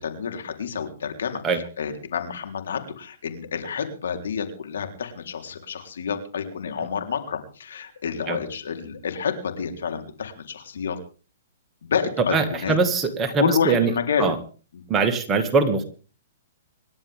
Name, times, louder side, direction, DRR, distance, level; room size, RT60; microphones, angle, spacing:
voice 1, 0.0-1.4 1.8-11.0 11.8-12.8 13.4-14.3 14.7-14.8, left 6 dB, 80° left, 5 dB, 3.8 m, -29 dB
voice 2, 12.3-13.9 14.2-14.3 14.9-15.8, right 4 dB, 20° right, 5 dB, 2.1 m, -22 dB
26.5 x 11.5 x 3.7 m, 0.38 s
hypercardioid pair, 145°, 0 cm